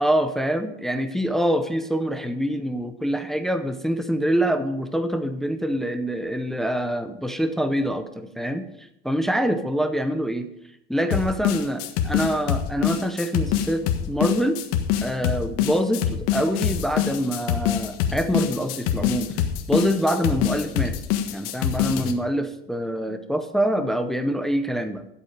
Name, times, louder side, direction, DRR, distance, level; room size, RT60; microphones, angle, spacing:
voice 1, 0.0-8.6 9.0-10.5 10.9-14.6 15.0-19.3 19.7-20.9 21.3-25.0, equal, ahead, 9 dB, 0.6 m, -25 dB
sound 1, 11.1-22.1, left 10 dB, 75° left, 1.6 m, -24 dB
12.0 x 8.2 x 5.2 m, 0.81 s
supercardioid pair, 140°, 30 cm